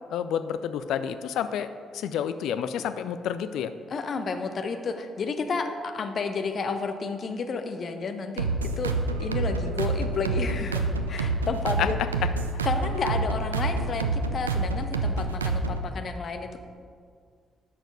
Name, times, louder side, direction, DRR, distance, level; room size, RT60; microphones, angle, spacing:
voice 1, 0.1-3.7 11.8-12.1, left 8 dB, 65° left, 11 dB, 0.4 m, -29 dB
voice 2, 3.9-8.9 9.2-12.0 12.6-16.6, left 4 dB, 50° left, 7 dB, 0.8 m, -31 dB
sound 1, 8.4-15.9, right 3 dB, 85° right, 0.3 m, -28 dB
8.4 x 6.4 x 4.7 m, 2.1 s
figure-of-eight pair, 40°, 0 cm